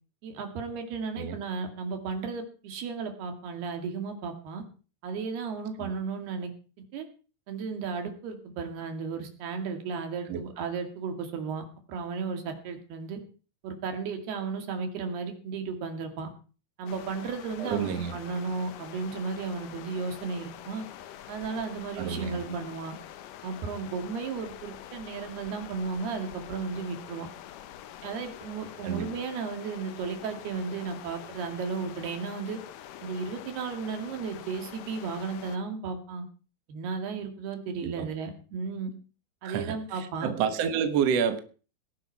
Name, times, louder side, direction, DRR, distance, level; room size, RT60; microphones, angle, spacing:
voice 1, 0.2-4.6 5.0-6.5 6.9-7.1 7.5-13.2 13.6-16.3 16.8-20.8 21.3-23.0 23.4-27.3 28.0-32.6 33.0-36.2 36.7-38.9 39.4-40.3, right 5 dB, 80° right, 5 dB, 4.4 m, -34 dB
sound 1, 16.9-35.6, left 11 dB, 70° left, 2.2 m, -46 dB
voice 2, 17.6-18.2 22.0-22.4 28.8-29.1 37.8-38.1 39.4-41.4, right 7 dB, 60° right, 8 dB, 1.8 m, -29 dB
18.5 x 11.0 x 4.7 m, 0.38 s
omnidirectional pair, 4.5 m